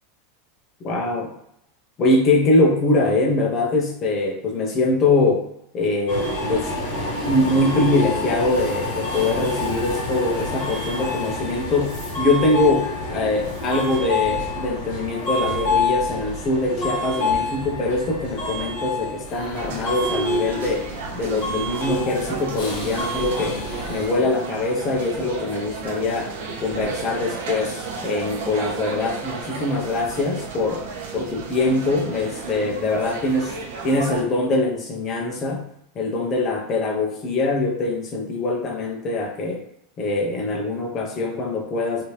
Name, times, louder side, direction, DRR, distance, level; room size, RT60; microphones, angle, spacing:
voice 1, 0.8-1.3 2.0-5.5 5.7-6.7 7.2-20.9 21.2-23.6 23.9-26.3 26.6-30.8 31.1-33.6 33.8-35.6 35.9-39.6 40.0-42.1, left 2 dB, 25° left, 1 dB, 0.6 m, -23 dB
Subway metro underground, 6.1-24.1, left 2 dB, 55° left, 1.4 m, -27 dB
sound 1, 19.5-34.2, right 4 dB, 80° right, 0.8 m, -34 dB
3.2 x 2.7 x 2.9 m, 0.78 s
supercardioid pair, 175°, 0 cm